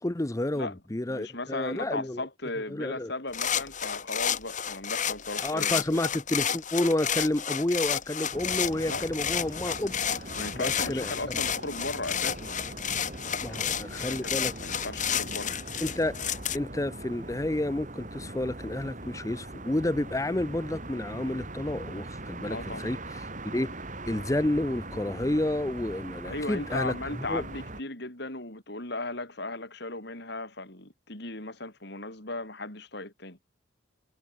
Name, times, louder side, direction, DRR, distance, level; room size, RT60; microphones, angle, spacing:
voice 1, 0.0-2.3 2.7-3.1 5.4-11.1 13.4-14.5 15.8-16.2 16.5-27.4, left 1 dB, 15° left, 0.6 m, -30 dB
voice 2, 1.1-6.0 8.9-9.0 10.4-12.5 13.5-15.6 22.5-22.9 26.2-33.4, left 2 dB, 55° left, 5.3 m, -37 dB
sound 1, 3.3-16.6, left 8 dB, 40° left, 2.4 m, -31 dB
sound 2, 8.3-27.8, right 2 dB, 40° right, 4.0 m, -41 dB
head